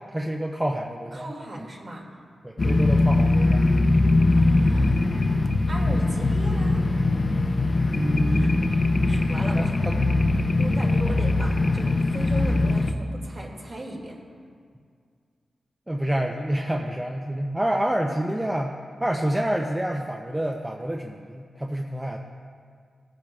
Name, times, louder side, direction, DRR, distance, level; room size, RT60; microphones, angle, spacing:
voice 1, 0.1-1.7 2.4-3.7 7.9-8.6 9.5-10.0 11.1-11.2 15.9-18.7 19.0-22.2, right 1 dB, 10° right, 0 dB, 0.6 m, -28 dB
voice 2, 1.1-2.2 4.3-4.9 5.7-6.8 8.2-8.8 9.1-9.7 10.6-14.2, right 1 dB, 40° right, -2 dB, 2.3 m, -37 dB
sound 1, 2.6-12.9, left 2 dB, 40° left, 0.6 m, -21 dB
19.0 x 9.9 x 2.4 m, 2.1 s
wide cardioid pair, 115°, 0 cm